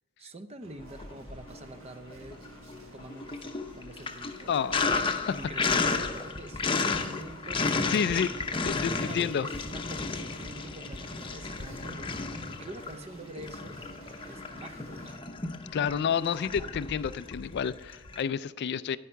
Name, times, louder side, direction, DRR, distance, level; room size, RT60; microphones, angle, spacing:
voice 1, 0.2-2.4 2.9-4.7 5.3-8.5 8.9-13.8 14.3-15.3, right 1 dB, 30° right, 11 dB, 0.6 m, -45 dB
sound 1, 0.6-15.2, right 2 dB, 90° right, 1.5 m, -52 dB
Sink (filling or washing), 0.9-1.8 2.1-18.2, left 4 dB, 25° left, 0.7 m, -33 dB
voice 2, 4.5-5.3 7.9-8.3 8.6-9.5 15.7-19.0, left 7 dB, 55° left, 16 dB, 0.3 m, -30 dB
10.5 x 8.3 x 4.5 m, 1.3 s
head